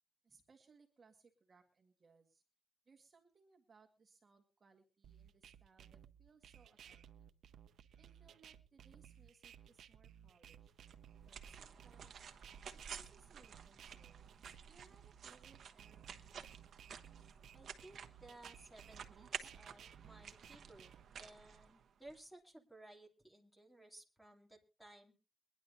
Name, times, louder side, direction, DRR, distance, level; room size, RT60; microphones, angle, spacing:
voice 1, 0.2-2.4 2.9-7.3 8.0-10.8 11.3-12.2 12.7-14.2 14.7-16.6, right 4 dB, 40° right, 3 dB, 1.7 m, -68 dB
sound 1, 5.0-21.0, right 9 dB, 90° right, 0.6 m, -59 dB
sound 2, 10.9-22.2, right 7 dB, 70° right, 1.1 m, -52 dB
voice 2, 17.5-20.9 21.2-25.1, right 1 dB, ahead, 1 dB, 2.9 m, -59 dB
23.0 x 10.5 x 2.7 m, 0.30 s
wide cardioid pair, 135°, 0 cm